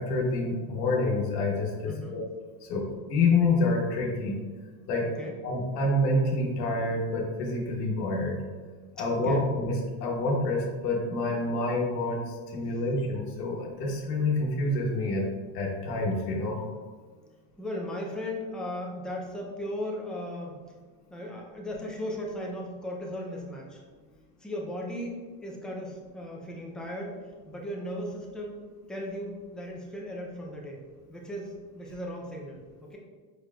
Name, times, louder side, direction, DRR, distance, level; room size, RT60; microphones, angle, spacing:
voice 1, 0.0-2.2 2.6-4.4 4.9-5.1 5.4-8.4 9.0-15.2 15.5-16.6, left 2 dB, 85° left, -1 dB, 1.1 m, -27 dB
voice 2, 1.8-2.2 5.0-5.3 9.1-9.4 17.6-20.6 21.1-23.8 24.4-28.6 28.9-30.8 31.1-33.0, left 1 dB, ahead, -2 dB, 0.5 m, -37 dB
4.7 x 4.6 x 2.4 m, 1.5 s
supercardioid pair, 130°, 47 cm